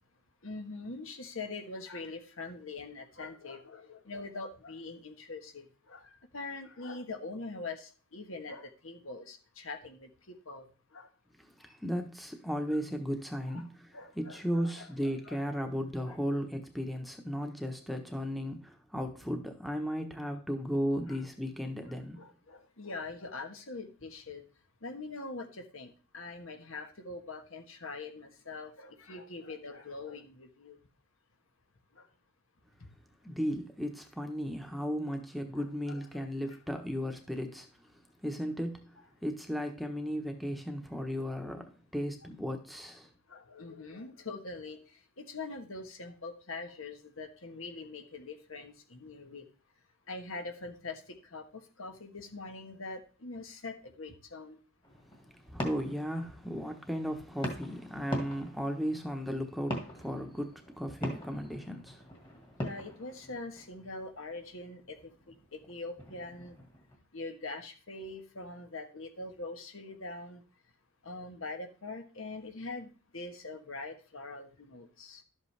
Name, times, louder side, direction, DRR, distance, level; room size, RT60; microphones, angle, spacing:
voice 1, 0.4-11.1 13.5-13.6 13.9-15.7 16.0-16.2 21.1-21.2 22.2-24.4 24.8-30.8 32.0-32.1 35.5-36.6 43.3-44.8 45.2-49.5 50.1-54.6 62.6-65.0 65.3-66.6 67.1-70.4 71.0-75.2, left 3 dB, 75° left, 1.5 m, -43 dB
voice 2, 11.6-22.2 33.2-37.7 38.2-38.9 39.2-43.1 55.5-62.0, equal, ahead, 1.1 m, -35 dB
sound 1, 54.8-67.0, equal, 25° left, 1.9 m, -43 dB
12.0 x 8.0 x 3.4 m
head